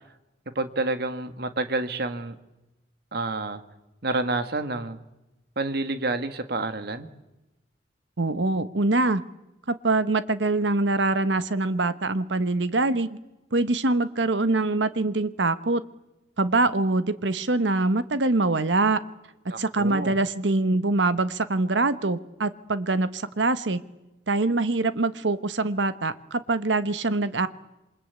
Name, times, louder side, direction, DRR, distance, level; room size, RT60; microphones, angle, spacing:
voice 1, 0.6-2.4 3.1-3.6 4.0-5.0 5.6-7.1 19.5-20.2, right 2 dB, 60° right, 9 dB, 1.8 m, -29 dB
voice 2, 8.2-9.2 9.8-13.2 13.5-15.8 16.4-19.0 19.4-23.8 24.3-27.5, right 2 dB, 90° right, 13 dB, 1.2 m, -24 dB
27.5 x 24.0 x 8.4 m, 0.99 s
head